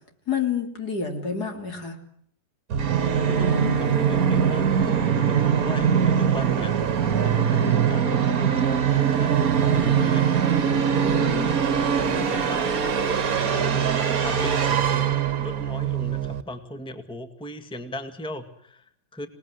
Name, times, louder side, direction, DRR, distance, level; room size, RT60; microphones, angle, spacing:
voice 1, 0.3-2.0 10.9-11.6, left 6 dB, 60° left, 5 dB, 3.7 m, -29 dB
Musical instrument, 2.7-16.4, right 7 dB, 55° right, 1.8 m, -22 dB
voice 2, 3.2-10.4 11.1-12.7 13.5-19.3, equal, 5° left, 8 dB, 1.7 m, -37 dB
27.0 x 19.0 x 9.7 m, 0.65 s
omnidirectional pair, 1.9 m